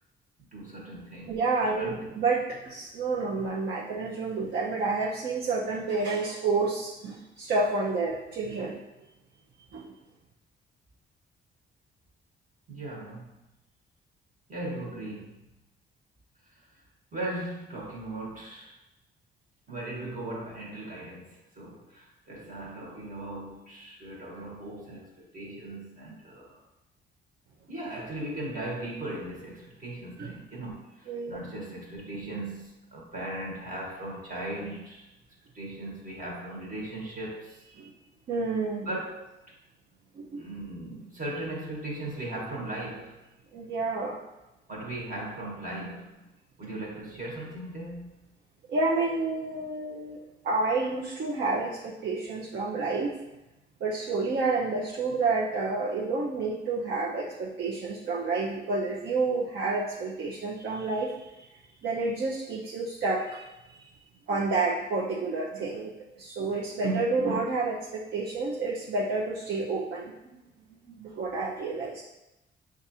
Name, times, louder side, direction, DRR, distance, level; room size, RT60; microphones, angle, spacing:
voice 1, 0.5-1.4 1.7-2.1 12.7-13.4 14.5-15.5 16.4-16.6 17.1-18.7 19.7-26.6 27.7-35.1 35.5-37.6 38.8-39.3 40.4-43.2 44.7-46.3 46.6-48.3, right 1 dB, 40° right, -3 dB, 1.3 m, -38 dB
voice 2, 1.3-8.8 9.7-9.9 30.2-30.3 31.1-31.4 37.7-37.9 38.3-38.9 40.1-40.4 43.5-44.2 48.7-53.2 53.8-61.3 61.8-63.4 63.7-63.9 64.3-70.1 70.9-72.0, right 3 dB, 60° right, -3 dB, 0.7 m, -29 dB
5.9 x 2.5 x 2.8 m, 0.96 s
cardioid pair, 90°, 20 cm